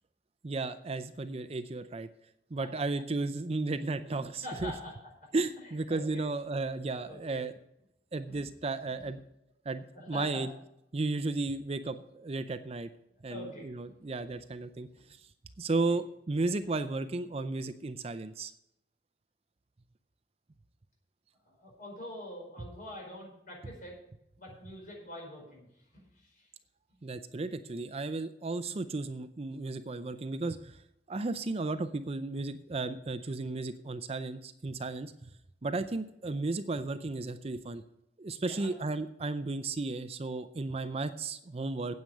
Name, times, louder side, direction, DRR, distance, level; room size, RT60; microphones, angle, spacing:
voice 1, 0.4-2.1 2.5-4.7 5.3-7.5 8.1-9.2 9.7-10.5 10.9-12.9 13.2-15.3 15.6-18.5 27.0-30.8 31.1-35.3 35.6-37.8 38.2-42.0, right 3 dB, 35° right, 11 dB, 0.5 m, -34 dB
voice 2, 4.1-4.9 5.6-6.3 7.0-7.5 8.3-8.4 9.0-9.1 9.9-10.4 13.3-13.7 21.4-24.0 24.4-26.5 38.4-38.7 41.8-42.0, left 1 dB, 50° left, -1 dB, 5.0 m, -45 dB
9.4 x 8.5 x 6.5 m, 0.78 s
head